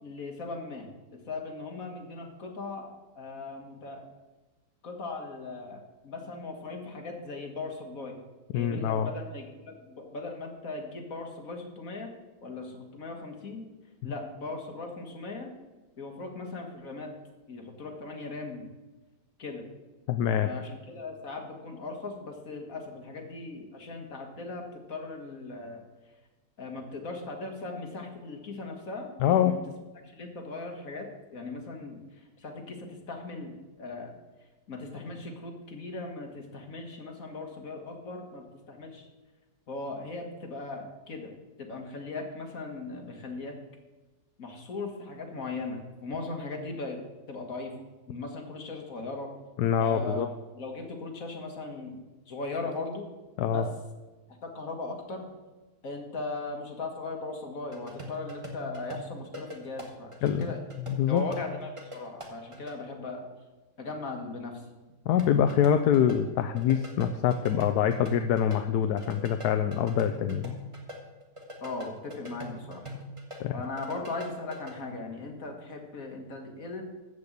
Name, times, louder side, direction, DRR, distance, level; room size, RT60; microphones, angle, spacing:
voice 1, 0.0-4.1 4.8-8.2 8.5-12.1 12.4-13.7 14.0-15.5 16.0-17.1 17.5-18.7 19.4-19.7 20.4-25.8 26.6-29.6 30.0-34.1 34.7-39.1 39.7-41.3 41.6-43.6 44.4-47.0 47.3-47.8 48.1-49.3 49.8-50.3 50.6-52.0 52.3-53.1 53.5-53.7 54.3-55.3 55.8-60.1 60.4-60.6 61.1-63.3 63.8-64.6 71.6-72.9 73.5-76.8, left 3 dB, 55° left, 2 dB, 2.2 m, -38 dB
voice 2, 8.5-9.1 20.1-20.5 29.2-29.6 49.6-50.3 53.4-53.6 60.2-60.5 60.9-61.2 65.1-70.5 73.4-73.5, left 9 dB, 75° left, 8 dB, 1.1 m, -25 dB
sound 1, 57.7-62.7 65.2-68.6 68.8-73.4 73.6-74.8, equal, 20° right, 1.7 m, -42 dB
13.5 x 5.3 x 8.2 m, 1.2 s
omnidirectional pair, 1.8 m